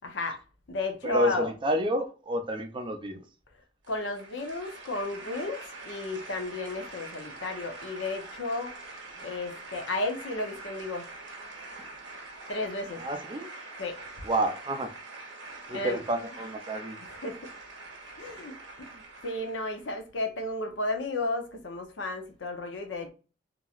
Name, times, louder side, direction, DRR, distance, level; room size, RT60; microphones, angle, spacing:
voice 1, 0.0-0.4 0.7-1.5 3.9-8.8 9.2-11.1 12.5-13.0 13.8-14.1 15.7-16.0 17.0-17.4 18.2-23.1, left 2 dB, 70° left, 0.7 m, -33 dB
voice 2, 1.0-3.2 13.0-13.5 14.2-14.9 15.7-17.0, equal, 25° right, 0.4 m, -29 dB
sound 1, 3.8-19.9, right 2 dB, 80° right, 0.9 m, -44 dB
3.0 x 2.6 x 2.4 m
head